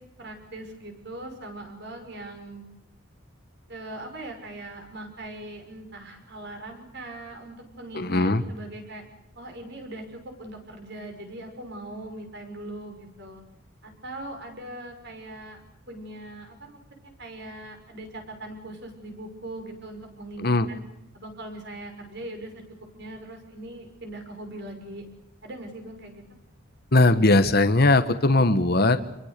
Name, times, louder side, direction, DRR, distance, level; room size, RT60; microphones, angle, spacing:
voice 1, 0.2-2.7 3.7-9.0 9.3-13.4 13.8-15.6 15.9-16.8 17.2-20.8 21.1-22.6 23.0-25.0 25.4-26.2, right 1 dB, 50° right, 5 dB, 6.0 m, -40 dB
voice 2, 7.9-8.4 20.4-20.7 26.9-29.0, left 2 dB, 45° left, 10 dB, 1.2 m, -19 dB
27.0 x 22.5 x 6.7 m, 0.87 s
head